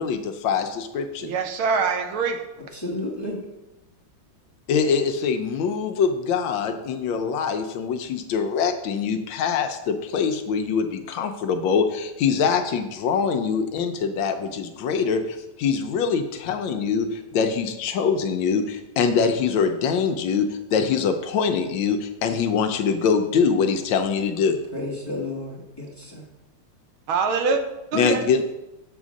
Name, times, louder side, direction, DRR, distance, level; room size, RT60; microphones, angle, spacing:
voice 1, 0.0-1.3 4.7-24.6 27.9-28.4, left 6 dB, 75° left, 6 dB, 1.3 m, -24 dB
voice 2, 1.2-2.4 27.1-27.6 27.9-28.2, right 5 dB, 80° right, 6 dB, 1.6 m, -23 dB
voice 3, 2.7-3.4 24.7-26.3, left 2 dB, 15° left, -3 dB, 0.8 m, -32 dB
7.0 x 3.7 x 6.2 m, 0.98 s
omnidirectional pair, 2.2 m